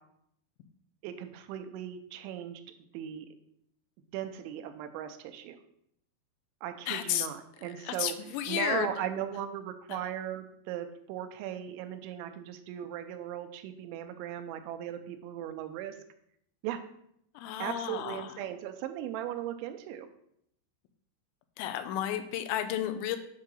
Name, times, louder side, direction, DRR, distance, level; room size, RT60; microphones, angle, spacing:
voice 1, 1.0-2.6 2.9-3.3 4.1-5.6 6.6-8.1 8.5-16.0 16.6-16.8 17.6-20.1, right 10 dB, 90° right, 8 dB, 3.0 m, -37 dB
voice 2, 6.9-7.3 7.9-8.9 17.4-18.4 21.6-23.2, left 11 dB, 85° left, 9 dB, 3.0 m, -32 dB
8.2 x 3.8 x 6.2 m, 0.73 s
omnidirectional pair, 5.2 m